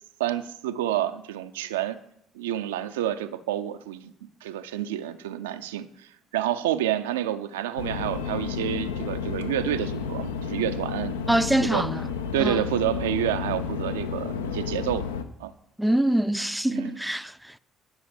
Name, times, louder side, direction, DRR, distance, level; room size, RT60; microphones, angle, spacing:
voice 1, 0.2-2.0 2.3-11.2 11.6-11.9 12.3-15.0 15.4-15.5 16.7-17.0, right 12 dB, 75° right, 0.4 m, -29 dB
sound 1, 7.8-15.2, left 6 dB, 80° left, 0.5 m, -31 dB
voice 2, 11.3-12.1 12.4-12.6 15.8-17.6, right 1 dB, 5° right, 0.4 m, -24 dB
10.5 x 5.8 x 6.4 m
figure-of-eight pair, 45°, 0 cm